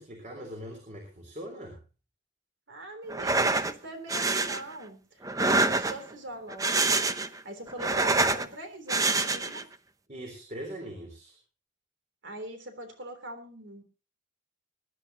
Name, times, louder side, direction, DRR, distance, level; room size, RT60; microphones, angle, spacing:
voice 1, 0.0-1.8 10.1-11.4, equal, 40° right, 2 dB, 3.8 m, -41 dB
voice 2, 2.7-9.6 12.2-13.8, right 1 dB, 70° right, 7 dB, 3.4 m, -42 dB
sound 1, 3.1-3.7 4.1-4.6 5.2-6.1 6.5-7.4 7.7-8.5 8.9-9.6, right 3 dB, 20° right, 0.7 m, -26 dB
23.5 x 11.5 x 2.9 m, 0.34 s
head